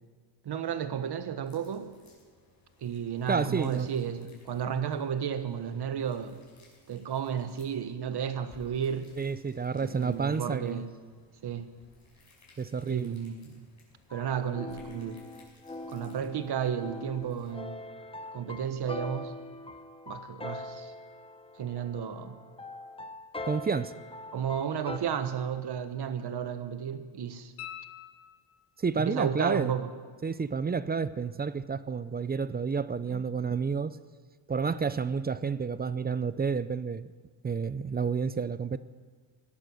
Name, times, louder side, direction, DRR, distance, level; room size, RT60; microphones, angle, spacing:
voice 1, 0.4-1.9 2.8-6.4 6.9-9.1 9.8-10.9 11.4-11.7 12.9-13.6 14.1-15.3 15.9-17.8 18.3-19.3 20.1-20.9 21.6-22.4 24.3-27.5 29.0-29.9 33.1-33.2, right 8 dB, 50° right, 10 dB, 1.3 m, -33 dB
sound 1, 1.4-17.5, left 2 dB, 35° left, 5.5 m, -61 dB
voice 2, 3.3-3.9 9.2-10.9 12.6-13.2 23.5-23.9 28.8-29.7 30.2-34.0 34.5-37.1 37.4-38.8, right 5 dB, 20° right, 15 dB, 0.4 m, -30 dB
sound 2, 14.1-25.0, left 2 dB, 10° left, 0.7 m, -42 dB
sound 3, 27.6-28.9 31.7-31.8, left 11 dB, 85° left, 0.9 m, -45 dB
18.0 x 11.5 x 6.3 m, 1.5 s
cardioid pair, 120°, 49 cm